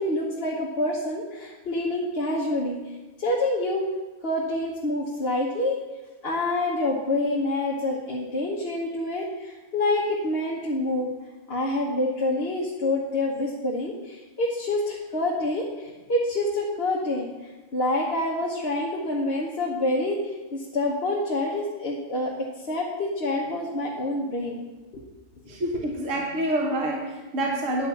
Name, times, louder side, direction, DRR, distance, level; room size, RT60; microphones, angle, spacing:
voice 1, 0.0-2.8 3.2-3.8 4.2-5.8 6.2-11.1 11.5-24.7 25.4-25.6, left 1 dB, 45° left, -3 dB, 1.3 m, -27 dB
voice 2, 25.5-27.9, right 1 dB, 60° right, 0 dB, 1.6 m, -27 dB
10.0 x 5.5 x 8.3 m, 1.2 s
omnidirectional pair, 1.5 m